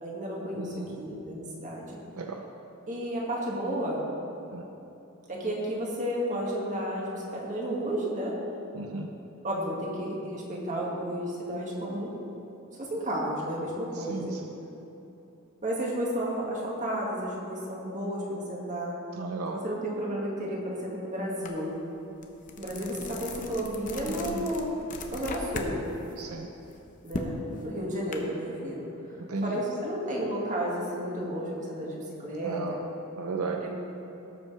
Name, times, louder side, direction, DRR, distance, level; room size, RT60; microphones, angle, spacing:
voice 1, 0.0-2.0 2.9-4.1 5.3-8.4 9.4-12.1 12.8-14.3 15.6-19.0 19.5-21.7 22.6-24.7 25.1-25.8 27.0-28.9 29.4-32.8 33.5-33.7, equal, 35° right, -4 dB, 2.1 m, -32 dB
voice 2, 0.6-1.0 2.2-2.4 4.5-4.7 8.7-9.1 14.1-14.3 19.2-19.6 24.1-24.4 26.2-26.5 29.3-29.6 32.4-32.7 33.2-33.6, right 3 dB, 80° right, 3 dB, 0.6 m, -34 dB
sound 1, 21.5-21.6 22.0-25.7 26.1-28.2, left 3 dB, 35° left, 0.8 m, -38 dB
18.0 x 7.4 x 3.4 m, 2.9 s
head